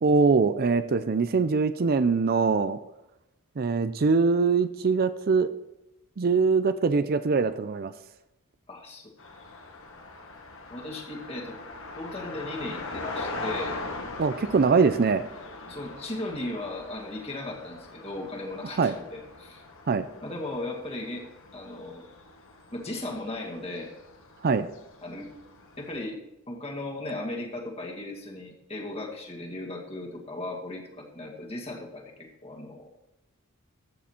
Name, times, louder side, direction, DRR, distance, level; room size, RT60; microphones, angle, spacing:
voice 1, 0.0-2.8 3.6-5.5 6.2-7.9 14.2-15.2 18.8-18.9 19.9-20.0 24.4-24.7, right 4 dB, 45° right, 12 dB, 0.5 m, -23 dB
voice 2, 8.7-9.1 10.7-11.6 11.9-13.8 15.7-19.6 20.2-21.2 21.5-22.1 22.7-23.9 25.0-25.3 25.8-26.2 26.5-32.9, left 2 dB, 25° left, 0 dB, 2.2 m, -37 dB
sound 1, 9.2-26.0, left 2 dB, 65° left, 1.7 m, -41 dB
14.5 x 6.9 x 4.4 m, 0.92 s
head